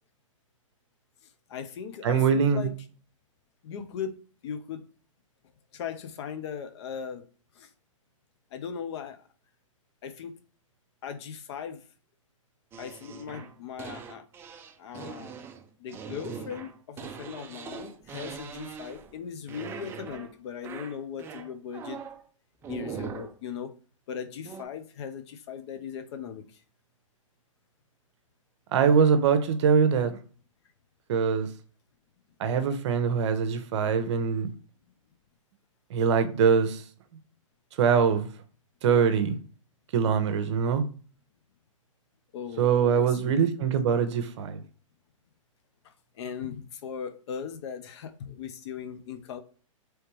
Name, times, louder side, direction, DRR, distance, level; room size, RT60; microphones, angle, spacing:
voice 1, 1.5-2.8 3.6-4.1 4.4-4.8 5.7-7.2 7.5-7.7 8.5-9.3 10.0-10.3 11.0-11.8 12.8-14.3 14.8-15.4 15.8-22.0 22.7-23.7 24.1-26.6 42.3-42.7 42.9-43.4 45.8-49.4, left 7 dB, 55° left, 0.7 m, -38 dB
voice 2, 2.0-2.7 28.7-30.2 31.1-31.5 32.4-34.5 35.9-36.8 37.8-38.3 38.8-39.4 39.9-40.8 42.6-44.6, right 6 dB, 55° right, 0.7 m, -23 dB
sound 1, 12.7-19.2 19.5-20.3 20.6-22.2 22.6-23.4 24.4-24.6, right 6 dB, 15° right, 0.3 m, -41 dB
3.3 x 3.1 x 3.0 m
hypercardioid pair, 125°, 17 cm